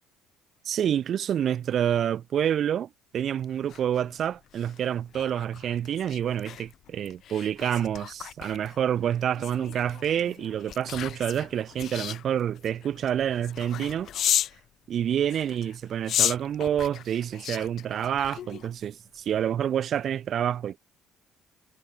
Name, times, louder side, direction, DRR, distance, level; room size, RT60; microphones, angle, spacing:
voice 1, 0.6-14.1 14.9-20.8, right 9 dB, 55° right, 2.9 m, -28 dB
sound 1, 3.4-14.6 15.2-18.9 19.3-19.5, left 11 dB, 60° left, 1.5 m, -34 dB
supercardioid pair, 80°, 0 cm